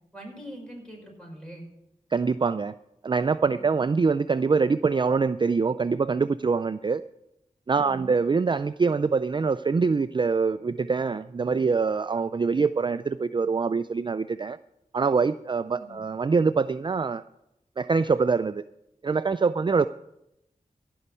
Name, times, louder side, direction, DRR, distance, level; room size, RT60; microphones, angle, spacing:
voice 1, 0.1-1.7 3.5-3.8 7.7-8.1 15.7-16.0, equal, 5° left, -1 dB, 5.5 m, -43 dB
voice 2, 2.1-2.7 3.0-7.0 7.7-14.6 14.9-17.2 17.8-18.6 19.0-19.9, right 4 dB, 35° right, 13 dB, 0.3 m, -24 dB
16.0 x 5.5 x 8.2 m, 0.85 s
wide cardioid pair, 55°, 14 cm